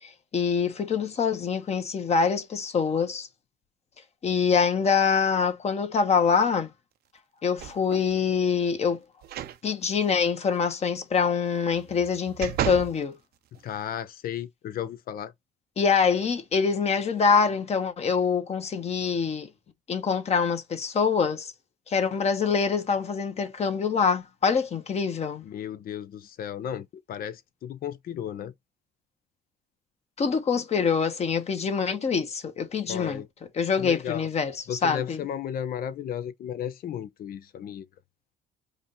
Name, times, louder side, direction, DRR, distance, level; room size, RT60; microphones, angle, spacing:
voice 1, 0.0-3.3 4.2-6.7 7.4-9.0 9.6-13.2 15.8-19.5 19.9-21.5 21.9-25.4 30.2-33.2 33.5-35.2, left 6 dB, 40° left, 1.4 m, -25 dB
sound 1, 7.6-8.1 9.2-9.6 10.0-10.1 11.7-13.0 13.5-13.6, right 11 dB, 70° right, 0.8 m, -33 dB
voice 2, 13.6-15.3 25.4-28.5 32.8-33.3 33.8-34.3 34.7-37.8, left 9 dB, 60° left, 0.9 m, -34 dB
4.9 x 2.7 x 3.9 m
cardioid pair, 110°, 17 cm